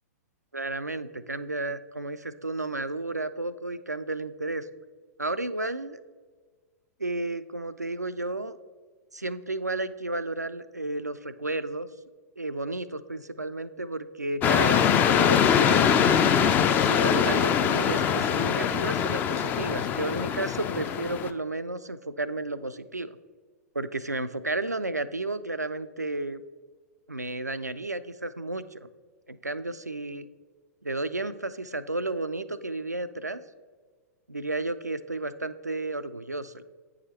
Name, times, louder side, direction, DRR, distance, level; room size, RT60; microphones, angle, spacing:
voice 1, 0.5-4.7 5.2-6.0 7.0-8.6 9.1-11.9 12.4-16.0 16.8-23.2 23.7-26.4 27.1-28.9 29.3-30.3 30.8-33.4 34.3-36.6, right 2 dB, 90° right, 13 dB, 0.4 m, -32 dB
sound 1, 14.4-21.3, left 8 dB, 20° left, 0.4 m, -23 dB
8.5 x 4.8 x 4.3 m, 1.4 s
figure-of-eight pair, 105°, 9 cm